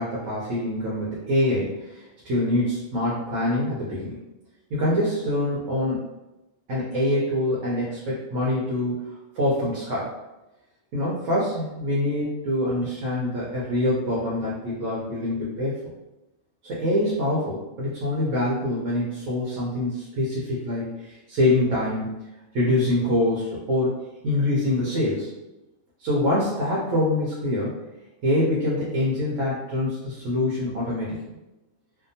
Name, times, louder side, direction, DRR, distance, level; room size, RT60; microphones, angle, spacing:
voice 1, 0.0-4.2 4.7-6.0 6.7-9.0 9.3-10.1 10.9-15.7 16.6-22.1 22.5-24.0 24.2-25.3 26.0-27.7 28.2-31.2, left 1 dB, 70° right, -6 dB, 1.0 m, -25 dB
2.7 x 2.1 x 2.6 m, 1.0 s
omnidirectional pair, 1.4 m